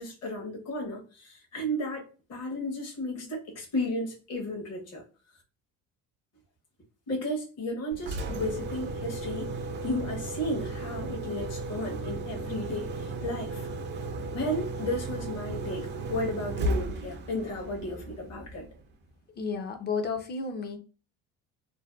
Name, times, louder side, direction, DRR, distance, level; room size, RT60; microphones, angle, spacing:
voice 1, 0.0-2.0 2.3-5.0 7.1-9.5 9.8-13.7 14.3-18.7, left 1 dB, 50° left, 0.9 m, -34 dB
Engine, 7.9-18.9, right 2 dB, 35° right, 0.4 m, -35 dB
voice 2, 19.4-20.8, left 4 dB, 30° left, 0.5 m, -32 dB
2.6 x 2.1 x 2.3 m
supercardioid pair, 100°, 32 cm